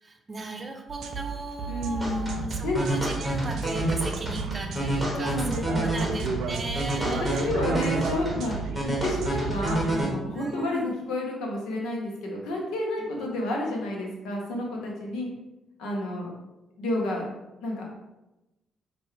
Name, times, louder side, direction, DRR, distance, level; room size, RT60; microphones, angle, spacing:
voice 1, 0.0-7.5 10.3-11.0 13.2-13.3, right 2 dB, 30° right, 4 dB, 0.7 m, -37 dB
sound 1, 0.9-9.9, right 5 dB, 75° right, 0.4 m, -33 dB
voice 2, 1.7-2.8 5.1-6.1 7.0-8.6 8.8-15.3 15.8-16.3 16.8-17.3 17.6-17.8, left 1 dB, 85° left, -1 dB, 1.0 m, -30 dB
sound 2, 2.0-10.1, right 1 dB, ahead, 1.4 m, -30 dB
5.5 x 2.7 x 3.2 m, 1.0 s
cardioid pair, 90°, 0 cm